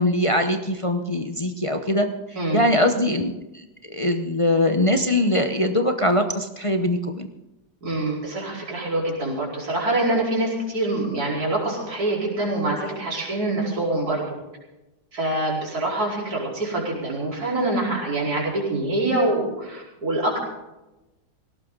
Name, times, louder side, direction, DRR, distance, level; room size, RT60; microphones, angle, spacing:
voice 1, 0.0-2.1 2.5-7.3, left 1 dB, 35° left, 5 dB, 0.5 m, -22 dB
voice 2, 7.8-14.2 15.1-20.4, right 2 dB, 55° right, -4 dB, 5.2 m, -25 dB
18.0 x 17.5 x 3.9 m, 0.99 s
omnidirectional pair, 2.0 m